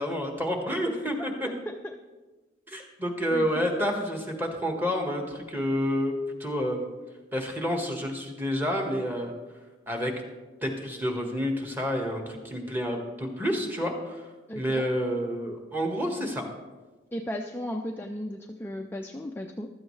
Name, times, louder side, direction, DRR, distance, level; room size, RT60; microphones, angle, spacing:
voice 1, 0.0-1.5 2.7-6.1 6.4-6.9 7.3-9.3 9.9-10.1 10.6-14.2 14.5-16.4, equal, 10° right, 2 dB, 1.5 m, -29 dB
voice 2, 3.3-3.7 14.5-14.9 17.1-19.7, left 1 dB, 10° left, 2 dB, 0.4 m, -35 dB
15.0 x 12.5 x 3.3 m, 1.2 s
head